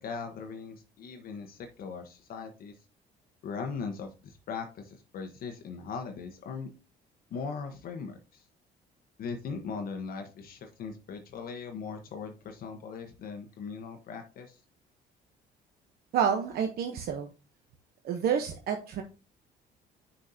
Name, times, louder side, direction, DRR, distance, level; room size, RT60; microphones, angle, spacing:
voice 1, 0.0-2.7 3.4-6.7 7.3-8.4 9.2-14.6, left 5 dB, 60° left, 5 dB, 1.1 m, -39 dB
voice 2, 16.1-17.3 18.0-19.0, right 7 dB, 65° right, 5 dB, 0.9 m, -29 dB
6.4 x 5.5 x 2.8 m, 0.31 s
cardioid pair, 110°, 17 cm